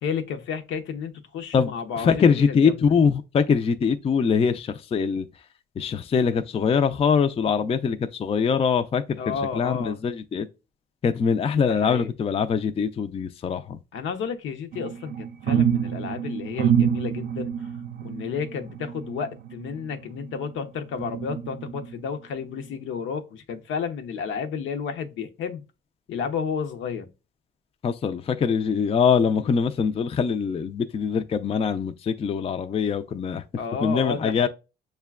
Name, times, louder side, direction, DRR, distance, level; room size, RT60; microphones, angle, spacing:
voice 1, 0.0-2.8 9.2-10.0 11.6-12.1 13.9-17.7 18.0-25.6 26.1-27.1 33.6-34.5, left 6 dB, 75° left, 0.7 m, -32 dB
voice 2, 1.5-5.3 5.8-9.2 9.5-10.5 11.0-13.8 27.8-33.4 33.8-34.5, left 6 dB, 30° left, 0.4 m, -23 dB
sound 1, 14.7-20.5 21.0-22.1 22.6-22.7, right 8 dB, 55° right, 0.4 m, -27 dB
6.5 x 2.2 x 2.3 m
cardioid pair, 90°, 20 cm